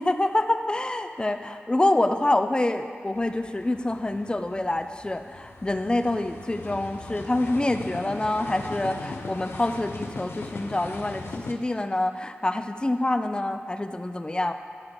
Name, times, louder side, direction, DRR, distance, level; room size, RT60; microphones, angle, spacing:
voice 1, 0.0-14.5, left 1 dB, 20° left, 8 dB, 0.4 m, -26 dB
sound 1, 3.1-11.5, left 3 dB, 70° left, 0.6 m, -39 dB
10.5 x 3.7 x 4.8 m, 2.2 s
wide cardioid pair, 65°, 4 cm